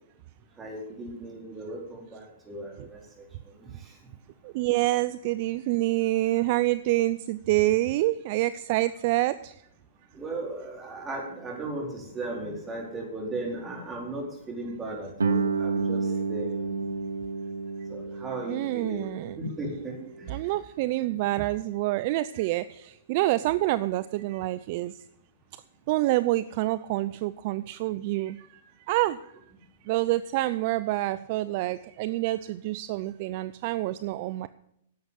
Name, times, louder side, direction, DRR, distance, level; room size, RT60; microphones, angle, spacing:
voice 1, 0.6-3.3 3.6-3.9 10.1-16.8 17.8-19.1 19.4-20.4, right 2 dB, 20° right, 0 dB, 4.4 m, -37 dB
voice 2, 4.4-9.6 18.5-19.4 20.3-24.9 25.9-29.2 29.8-34.5, right 17 dB, 50° right, 15 dB, 0.4 m, -27 dB
Guitar, 15.2-20.6, right 4 dB, 90° right, 0.9 m, -31 dB
11.0 x 7.9 x 7.5 m, 0.75 s
hypercardioid pair, 120°, 0 cm